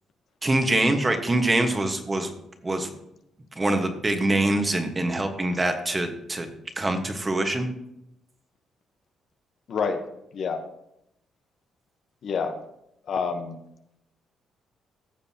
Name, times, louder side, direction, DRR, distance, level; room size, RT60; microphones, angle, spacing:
voice 1, 0.4-2.3 2.6-2.9 3.5-6.5 6.8-7.7, right 2 dB, 25° right, 6 dB, 1.3 m, -24 dB
voice 2, 9.7-10.0 10.3-10.6 12.2-12.6 13.1-13.6, left 5 dB, 60° left, 7 dB, 1.0 m, -27 dB
15.0 x 6.7 x 2.9 m, 0.81 s
cardioid pair, 90°, 0 cm